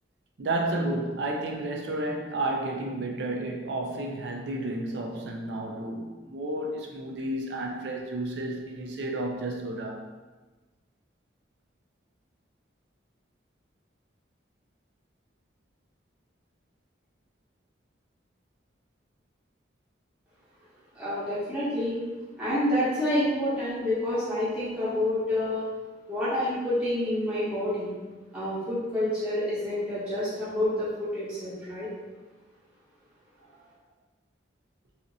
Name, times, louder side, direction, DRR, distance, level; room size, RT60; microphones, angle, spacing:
voice 1, 0.4-10.0, right 2 dB, 70° right, 0.4 m, -31 dB
voice 2, 20.9-22.0 22.4-25.6 26.1-27.9 28.3-31.9, left 1 dB, 5° right, 0.8 m, -28 dB
2.7 x 2.5 x 2.6 m
head